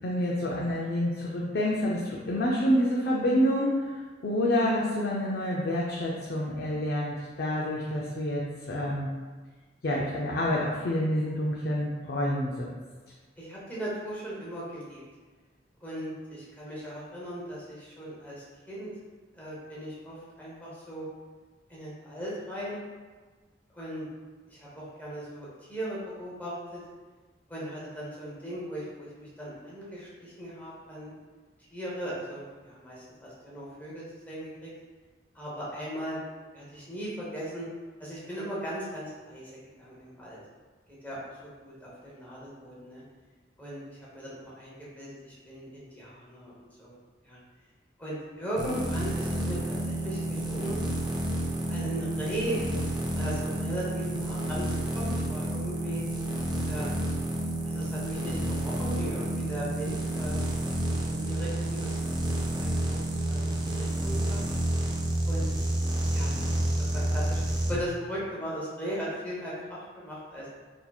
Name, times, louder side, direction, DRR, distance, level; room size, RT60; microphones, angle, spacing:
voice 1, 0.0-9.1 9.8-12.7, equal, 55° left, -4 dB, 0.4 m, -28 dB
voice 2, 13.4-15.0 15.8-18.9 19.3-21.1 21.7-22.8 23.7-24.0 24.5-26.8 27.5-31.1 31.7-34.7 35.3-36.2 36.5-37.7 38.0-40.4 41.0-43.0 43.6-46.9 47.2-47.4 48.0-50.8 51.7-52.6 53.1-56.0 56.6-57.0 57.6-60.4 60.9-62.2 62.6-63.0 63.2-64.5 65.3-65.5 66.1-70.6, equal, 10° left, -8 dB, 0.7 m, -38 dB
sound 1, 48.6-67.7, right 1 dB, 25° right, 0.4 m, -30 dB
4.1 x 2.8 x 2.3 m, 1.4 s
head